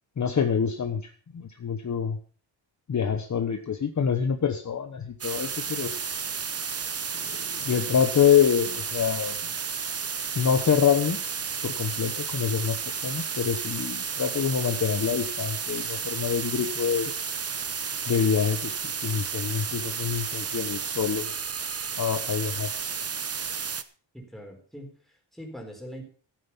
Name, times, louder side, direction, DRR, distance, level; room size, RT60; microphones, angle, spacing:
voice 1, 0.2-2.2 2.9-5.9 7.2-9.4 10.3-11.2 11.6-12.8 13.0-17.1 18.1-21.3 22.0-22.7, left 7 dB, 35° left, 6 dB, 1.1 m, -26 dB
sound 1, 5.2-23.8, right 6 dB, 30° right, 0.8 m, -32 dB
voice 2, 24.1-26.0, equal, ahead, 1 dB, 4.2 m, -42 dB
14.0 x 9.3 x 5.6 m, 0.42 s
wide cardioid pair, 135°, 47 cm